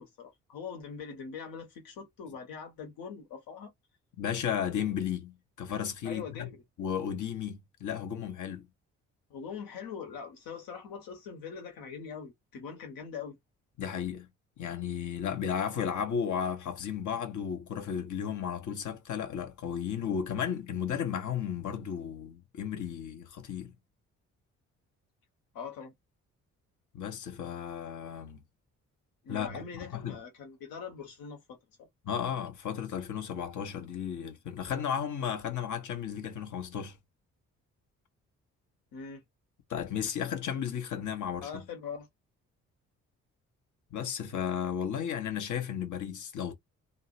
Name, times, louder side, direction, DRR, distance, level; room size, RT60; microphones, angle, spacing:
voice 1, 0.0-3.7 6.0-6.6 9.3-13.4 25.5-25.9 29.2-31.9 38.9-39.2 41.4-42.1, left 6 dB, 70° left, 1.3 m, -42 dB
voice 2, 4.2-6.5 6.8-8.7 13.8-14.3 14.6-23.7 26.9-28.4 29.3-30.2 32.0-36.9 39.7-41.5 43.9-46.5, left 8 dB, 55° left, 0.9 m, -34 dB
2.8 x 2.0 x 2.7 m
hypercardioid pair, 40°, 36 cm